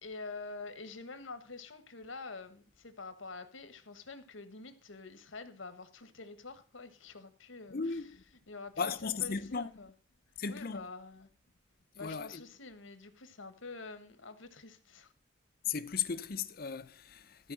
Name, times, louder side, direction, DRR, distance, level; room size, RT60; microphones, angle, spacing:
voice 1, 0.0-8.1 8.5-9.9 10.5-11.3 11.9-15.1, left 3 dB, 85° left, 1.4 m, -47 dB
voice 2, 7.7-8.1 8.8-9.7 10.4-10.9 12.0-12.4 15.6-17.5, left 6 dB, 50° left, 0.6 m, -36 dB
14.0 x 4.8 x 7.6 m
head